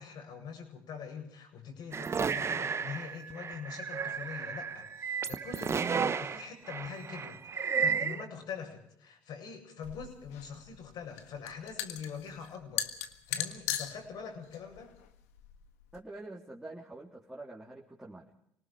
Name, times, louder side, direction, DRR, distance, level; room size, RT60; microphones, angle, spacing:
voice 1, 0.0-14.9, left 6 dB, 60° left, 3 dB, 7.9 m, -44 dB
sound 1, 1.9-8.2, right 6 dB, 35° right, 1.1 m, -33 dB
sound 2, 9.8-16.0, left 11 dB, 85° left, 1.6 m, -39 dB
voice 2, 15.9-18.3, right 2 dB, 10° right, -4 dB, 3.7 m, -46 dB
27.0 x 19.0 x 5.1 m, 0.72 s
hypercardioid pair, 70°, 8 cm